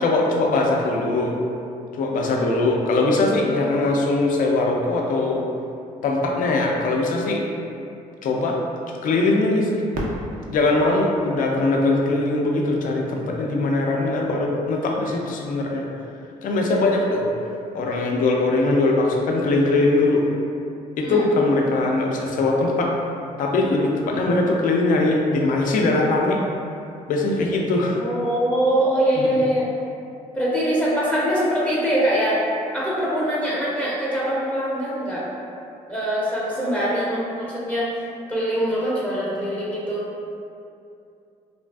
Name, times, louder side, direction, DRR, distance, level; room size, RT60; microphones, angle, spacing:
voice 1, 0.0-1.3 2.0-5.4 6.0-7.4 8.2-8.6 9.0-9.8 10.5-15.8 16.4-17.3 17.7-20.3 21.0-22.9 23.4-26.4 27.1-28.0 29.2-29.3, left 2 dB, 60° left, -1 dB, 0.4 m, -21 dB
voice 2, 2.2-2.6 21.0-21.3 27.9-29.7 30.3-32.4 32.7-35.2 35.9-38.0 38.3-40.1, equal, 10° left, -7 dB, 0.6 m, -23 dB
Fireworks, 9.9-12.7 13.4-13.5 14.2-14.6 16.5-16.6, right 1 dB, 65° right, 0.4 m, -36 dB
2.4 x 2.4 x 2.2 m, 2.6 s
cardioid pair, 70°, 15 cm